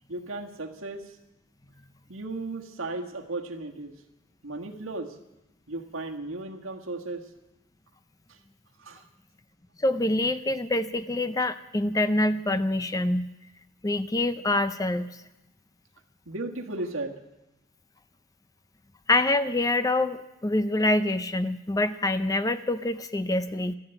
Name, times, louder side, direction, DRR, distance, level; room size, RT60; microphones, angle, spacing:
voice 1, 0.1-1.2 2.1-3.9 4.4-5.2 5.7-7.3 8.3-8.4 8.8-9.0 16.2-17.2, right 2 dB, 80° right, 3 dB, 1.6 m, -35 dB
voice 2, 9.8-13.3 13.8-15.1 19.1-23.7, left 2 dB, 15° left, 12 dB, 0.5 m, -25 dB
13.5 x 11.5 x 8.9 m, 0.95 s
head